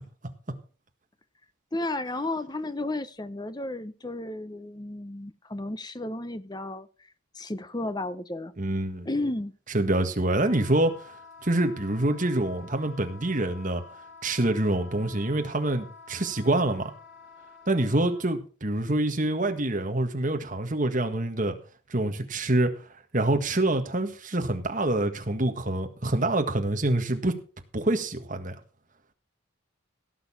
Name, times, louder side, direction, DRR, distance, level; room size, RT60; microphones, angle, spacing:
voice 1, 1.7-6.9 7.3-8.5 9.0-9.5, left 2 dB, 20° left, 0.7 m, -33 dB
voice 2, 8.6-9.1 9.7-10.9 11.4-13.8 14.2-16.9 17.7-21.6 21.9-22.7 23.1-27.3 27.7-28.5, right 1 dB, 35° right, 1.7 m, -26 dB
Wind instrument woodwind instrument, 10.4-18.2, left 4 dB, 60° left, 3.6 m, -49 dB
17.0 x 6.9 x 5.6 m
head